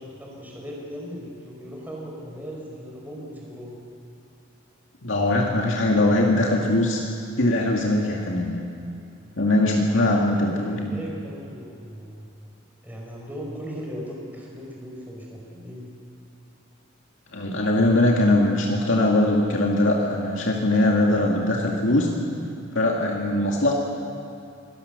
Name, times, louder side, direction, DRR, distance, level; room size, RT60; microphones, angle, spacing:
voice 1, 0.0-3.8 10.2-12.3 12.8-16.0, equal, 10° right, -3 dB, 5.1 m, -38 dB
voice 2, 5.0-7.0 7.4-8.6 9.4-11.0 17.3-22.1 22.7-23.7, left 1 dB, 65° left, -1 dB, 2.3 m, -21 dB
26.0 x 19.0 x 6.8 m, 2.6 s
head